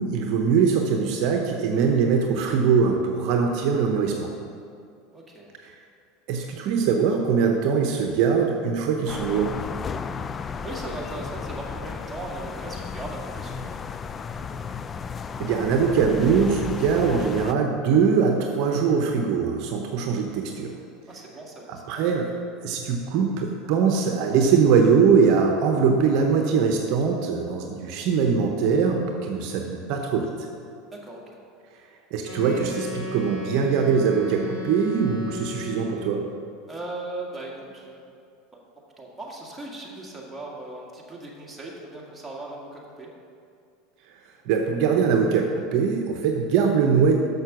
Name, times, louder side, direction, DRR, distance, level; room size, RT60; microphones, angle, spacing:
voice 1, 0.0-4.3 5.6-5.7 6.3-9.5 15.4-20.8 21.9-22.3 22.6-30.5 32.1-36.2 44.5-45.5 45.7-47.1, right 6 dB, 60° right, 2 dB, 0.8 m, -22 dB
voice 2, 5.1-5.5 10.6-13.7 21.1-22.0 30.9-31.2 36.7-38.0 39.0-43.1, right 2 dB, 10° right, -4 dB, 2.0 m, -38 dB
sound 1, 9.1-17.5, left 6 dB, 30° left, 0.3 m, -34 dB
Wind instrument woodwind instrument, 32.2-36.3, left 1 dB, 75° left, 1.8 m, -35 dB
6.7 x 6.5 x 6.1 m, 2.4 s
hypercardioid pair, 95°, 0 cm